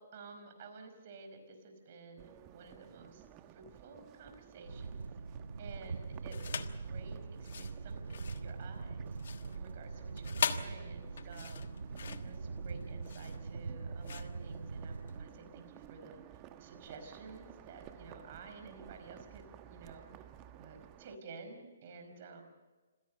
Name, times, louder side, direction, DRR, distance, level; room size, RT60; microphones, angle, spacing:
voice 1, 0.0-3.2 3.5-5.0 5.6-9.1 9.5-11.7 12.2-20.3 20.5-22.4, right 4 dB, 45° right, 6 dB, 5.1 m, -52 dB
sound 1, 2.2-21.2, right 11 dB, 25° right, 1.2 m, -56 dB
sound 2, 4.6-15.3, right 4 dB, 85° right, 0.6 m, -42 dB
sound 3, 6.3-6.8 7.3-15.2, left 7 dB, 65° left, 1.3 m, -41 dB
26.5 x 16.5 x 6.7 m, 1.3 s
hypercardioid pair, 150°, 0 cm